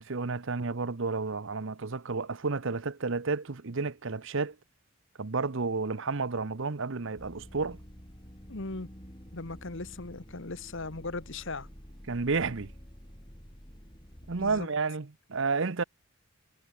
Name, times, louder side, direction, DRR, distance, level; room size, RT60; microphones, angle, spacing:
voice 1, 0.0-4.5 5.2-7.8 12.1-12.7 14.3-15.8, right 4 dB, 60° right, 0.9 m, -31 dB
sound 1, 7.2-14.7, equal, 20° left, 5.8 m, -49 dB
voice 2, 8.5-8.9 9.3-11.7 14.4-14.7, left 3 dB, 60° left, 1.5 m, -38 dB
head